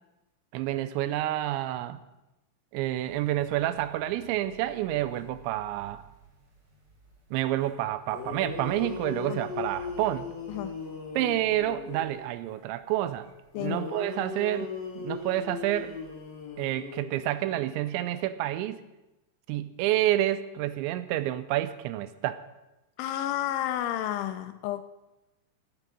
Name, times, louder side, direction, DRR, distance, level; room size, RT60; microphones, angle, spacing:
voice 1, 0.5-2.0 2.7-6.0 7.3-10.3 11.2-13.3 13.6-16.0 16.6-18.8 19.5-22.4, right 14 dB, 85° right, 14 dB, 2.8 m, -29 dB
sound 1, 3.0-16.5, right 4 dB, 40° right, 2.2 m, -55 dB
sound 2, 7.8-7.9 8.1-12.3 13.5-17.6, left 5 dB, 45° left, 2.6 m, -38 dB
voice 2, 13.5-13.9 23.0-24.8, left 12 dB, 85° left, 9 dB, 3.0 m, -31 dB
9.1 x 9.0 x 8.3 m, 0.99 s
omnidirectional pair, 5.4 m